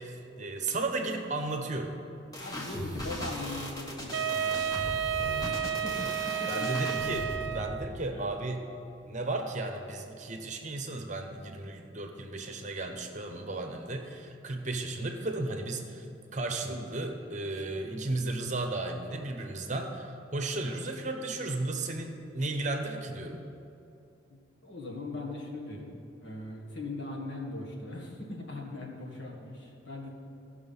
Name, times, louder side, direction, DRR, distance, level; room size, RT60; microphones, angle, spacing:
voice 1, 0.0-2.0 6.5-8.7 9.1-16.1 16.3-23.4, right 2 dB, 40° right, 4 dB, 0.9 m, -34 dB
sound 1, 2.3-7.6, left 1 dB, 20° left, 1.2 m, -38 dB
voice 2, 2.4-6.9 8.1-8.4 16.7-16.9 17.8-18.3 24.3-30.1, left 2 dB, 65° left, -1 dB, 1.8 m, -40 dB
Wind instrument woodwind instrument, 4.1-8.0, right 9 dB, 75° right, 0.4 m, -31 dB
15.0 x 6.1 x 5.5 m, 2.7 s
head